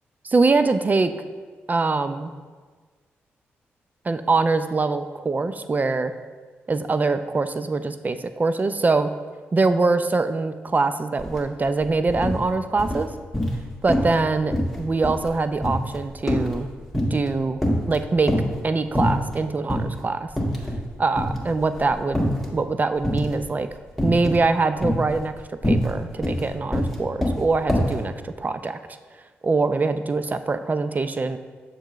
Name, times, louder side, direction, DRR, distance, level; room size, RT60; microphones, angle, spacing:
voice 1, 0.2-1.1 1.7-2.3 4.1-6.1 6.7-9.1 9.5-13.1 13.8-16.7 17.1-17.6 17.9-18.3 18.6-20.3 21.0-23.7 24.0-25.3 25.6-28.8 29.4-31.4, right 3 dB, 35° right, 10 dB, 0.5 m, -23 dB
sound 1, 11.2-11.4 11.7-12.4 12.8-13.6 13.9-14.2 14.5-17.3 17.6-18.6 18.9-19.4 19.7-19.9 20.3-20.9 21.1-22.5 23.0-23.4 24.0-24.4 24.8-28.0, equal, 5° left, 1.7 m, -24 dB
6.6 x 6.2 x 3.1 m, 1.5 s
supercardioid pair, 45°, 5 cm